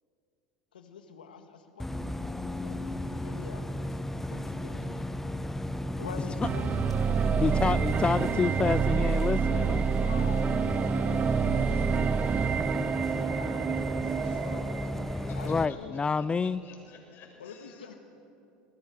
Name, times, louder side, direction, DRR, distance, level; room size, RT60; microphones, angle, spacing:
voice 1, 0.7-1.5 1.8-1.9 2.6-5.1 6.0-6.7 7.7-7.8 10.0-11.1 11.4-12.9 13.4-13.7 15.3-16.0 16.3-16.5 17.4-18.0, left 6 dB, 85° left, 6 dB, 2.2 m, -46 dB
Bus, 1.8-15.7, left 1 dB, 5° left, 1.2 m, -34 dB
sound 1, 6.4-15.5, right 7 dB, 30° right, 0.6 m, -28 dB
sound 2, 6.5-14.5, right 2 dB, 90° right, 3.9 m, -61 dB
voice 2, 6.8-8.7 10.7-12.1 13.0-18.0, left 4 dB, 50° left, 0 dB, 7.8 m, -50 dB
voice 3, 7.4-9.9 15.5-16.6, left 5 dB, 20° left, 19 dB, 0.5 m, -28 dB
29.5 x 20.5 x 6.5 m, 2.6 s
hypercardioid pair, 80°, 5 cm